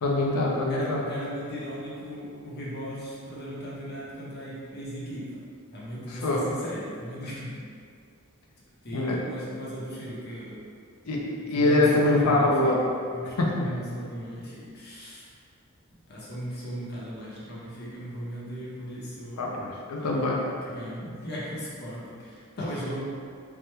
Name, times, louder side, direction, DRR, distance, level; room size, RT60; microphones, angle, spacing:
voice 1, 0.0-1.0 6.1-6.5 8.9-9.2 11.1-12.8 13.4-13.6 19.4-20.5, left 2 dB, 85° left, -2 dB, 0.5 m, -24 dB
voice 2, 0.7-5.4 5.7-7.6 8.8-10.6 11.1-11.2 11.5-12.8 13.1-15.3 16.1-19.5 20.0-23.0, equal, 45° left, -7 dB, 0.7 m, -37 dB
3.3 x 2.0 x 3.0 m, 2.2 s
head